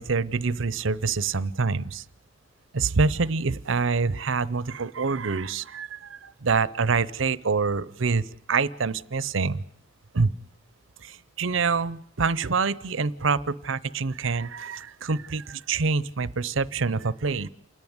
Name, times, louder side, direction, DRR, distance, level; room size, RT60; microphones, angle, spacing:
voice 1, 0.0-2.0 2.7-8.2 8.5-9.6 10.1-10.3 11.0-17.5, right 4 dB, 70° right, 18 dB, 0.7 m, -26 dB
28.5 x 11.0 x 9.6 m, 0.77 s
head